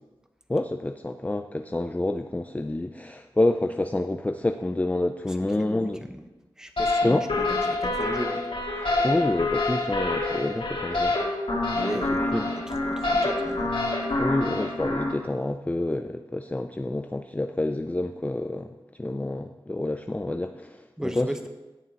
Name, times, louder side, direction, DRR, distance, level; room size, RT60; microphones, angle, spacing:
voice 1, 0.5-6.1 7.0-7.3 9.0-11.2 12.1-12.5 14.2-21.5, left 2 dB, 15° left, 8 dB, 0.4 m, -28 dB
voice 2, 5.4-6.2 6.6-8.4 11.7-13.7 21.0-21.5, equal, 5° right, 5 dB, 1.1 m, -35 dB
sound 1, 6.8-15.1, left 2 dB, 70° left, 2.5 m, -26 dB
17.5 x 7.0 x 3.0 m, 1.1 s
wide cardioid pair, 60°, 9 cm